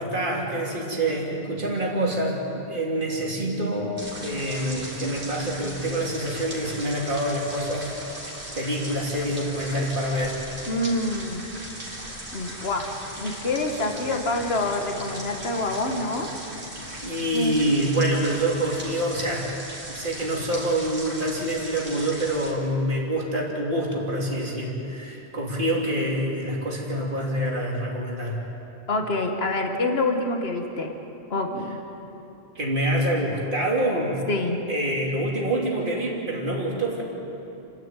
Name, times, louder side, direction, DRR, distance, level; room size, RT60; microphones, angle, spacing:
voice 1, 0.0-8.3 8.5-10.4 17.0-19.5 19.9-28.4 32.1-32.2 32.5-34.2 34.7-37.0, right 1 dB, 55° right, -2 dB, 3.3 m, -26 dB
sound 1, 4.0-22.5, right 1 dB, 80° right, 4.0 m, -38 dB
voice 2, 10.7-11.5 12.3-16.3 17.3-17.6 28.9-30.9 31.3-31.8 34.3-34.6, left 2 dB, 70° left, 4 dB, 1.9 m, -26 dB
30.0 x 12.0 x 9.1 m, 2.8 s
omnidirectional pair, 1.1 m